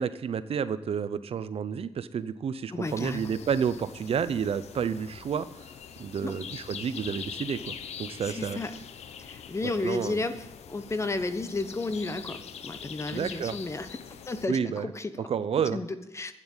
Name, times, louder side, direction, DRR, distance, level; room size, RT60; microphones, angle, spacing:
voice 1, 0.0-5.5 6.0-8.6 9.6-10.2 13.1-13.5 14.5-14.9 15.2-15.8, right 7 dB, 65° right, 14 dB, 0.7 m, -30 dB
voice 2, 2.7-3.3 6.2-6.4 8.2-8.8 9.2-13.9 14.3-15.3 15.7-16.3, left 3 dB, 25° left, 10 dB, 1.1 m, -33 dB
sound 1, 2.8-14.5, left 7 dB, 85° left, 0.9 m, -43 dB
11.5 x 9.0 x 9.0 m, 0.98 s
cardioid pair, 95°, 11 cm